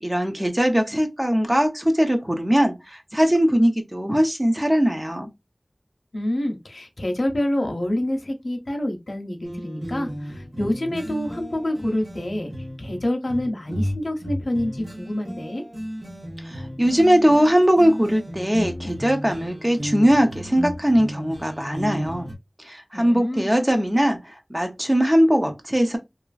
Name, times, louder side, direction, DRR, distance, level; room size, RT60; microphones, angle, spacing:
voice 1, 0.0-5.3 16.4-22.3 22.6-26.0, equal, 20° right, 0.7 m, -20 dB
voice 2, 6.1-12.5 12.8-15.6 22.9-23.5, left 1 dB, 90° left, 0.6 m, -27 dB
sound 1, 9.4-22.3, equal, 50° right, 0.9 m, -34 dB
2.9 x 2.4 x 2.3 m
wide cardioid pair, 45°, 0 cm